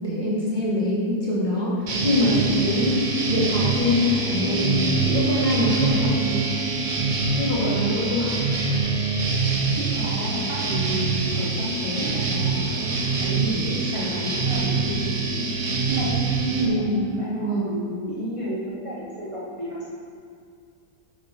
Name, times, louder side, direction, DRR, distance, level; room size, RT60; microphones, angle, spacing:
voice 1, 0.0-6.5 7.4-8.4 13.9-14.3 16.6-17.8, left 1 dB, 30° left, -8 dB, 1.9 m, -24 dB
sound 1, 1.9-16.7, right 4 dB, 50° right, 0.5 m, -25 dB
sound 2, 2.2-17.2, right 4 dB, 70° right, 2.0 m, -34 dB
voice 2, 9.7-12.9 13.2-15.5 15.9-19.9, right 1 dB, 25° right, -8 dB, 0.9 m, -31 dB
8.0 x 5.4 x 4.4 m, 2.2 s
omnidirectional pair, 1.7 m